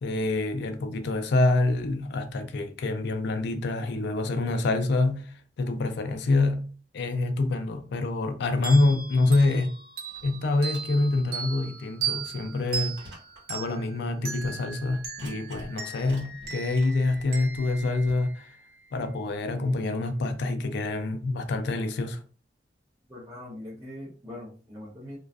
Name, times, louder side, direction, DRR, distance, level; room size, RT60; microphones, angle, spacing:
voice 1, 0.0-5.3 5.6-9.7 10.2-13.1 13.5-18.5 18.9-22.2, left 2 dB, 65° left, 0.4 m, -26 dB
sound 1, 8.6-18.9, right 6 dB, 55° right, 0.6 m, -38 dB
sound 2, 10.1-10.3 10.6-11.2 11.7-11.8 12.4-12.5 13.0-13.4 13.7-13.8 14.3-14.5 15.0-15.7 16.0-18.1, equal, 85° right, 1.2 m, -48 dB
voice 2, 23.1-25.2, left 1 dB, 15° right, 0.6 m, -41 dB
2.4 x 2.3 x 2.2 m
head